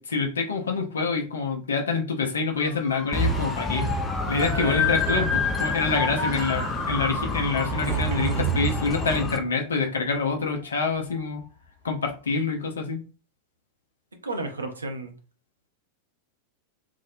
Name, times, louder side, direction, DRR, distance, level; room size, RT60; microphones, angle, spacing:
voice 1, 0.0-3.8 4.3-11.4 11.8-13.0, left 4 dB, 70° left, 2 dB, 0.5 m, -26 dB
Motor vehicle (road) / Siren, 2.5-11.4 11.9-12.3, left 1 dB, 30° left, 0.9 m, -38 dB
sound 1, 3.1-9.4, left 3 dB, 15° left, 0.4 m, -27 dB
voice 2, 4.5-4.9 14.2-15.1, right 2 dB, 75° right, 4 dB, 0.5 m, -31 dB
Sliding door, 4.7-9.4, right 9 dB, 45° right, 0.8 m, -33 dB
2.4 x 2.1 x 2.6 m, 0.35 s
figure-of-eight pair, 90°, 0 cm